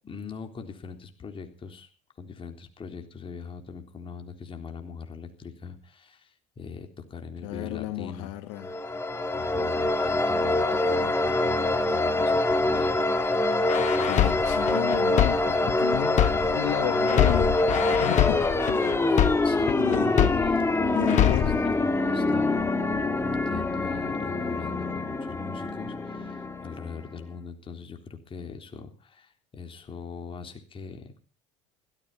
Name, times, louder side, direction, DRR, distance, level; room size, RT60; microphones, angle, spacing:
voice 1, 0.0-1.9 2.2-8.3 9.3-13.5 13.9-14.4 19.4-21.2 21.6-31.1, left 5 dB, 35° left, 5 dB, 3.8 m, -41 dB
voice 2, 7.4-8.7 14.0-17.7 18.0-19.3 19.8-20.3 20.9-21.7, left 15 dB, 85° left, 9 dB, 1.7 m, -33 dB
sound 1, 8.6-27.2, left 2 dB, 15° left, 2.6 m, -25 dB
sound 2, 13.7-16.7 17.1-20.7 21.1-21.7, left 12 dB, 50° left, 1.1 m, -25 dB
16.0 x 14.0 x 5.6 m, 0.39 s
supercardioid pair, 90°, 16 cm